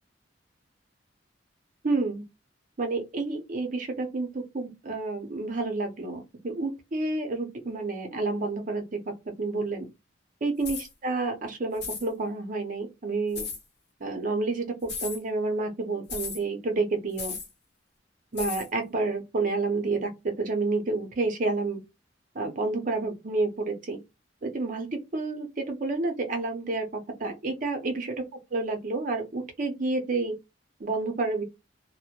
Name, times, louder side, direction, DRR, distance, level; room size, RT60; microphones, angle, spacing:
voice 1, 1.8-2.2 2.8-9.0 9.4-9.9 10.4-13.5 14.0-14.6 15.0-17.3 18.3-20.1 20.4-21.8 22.3-24.0 24.4-24.9 25.1-28.1 28.5-30.3 30.8-31.4, right 3 dB, 45° right, 0.6 m, -29 dB
sound 1, 10.6-10.9 11.8-12.1 13.3-13.6 14.8-15.2 16.1-16.4 17.2-17.5 18.4-18.7, left 5 dB, 60° left, 0.8 m, -35 dB
2.1 x 2.0 x 2.8 m
head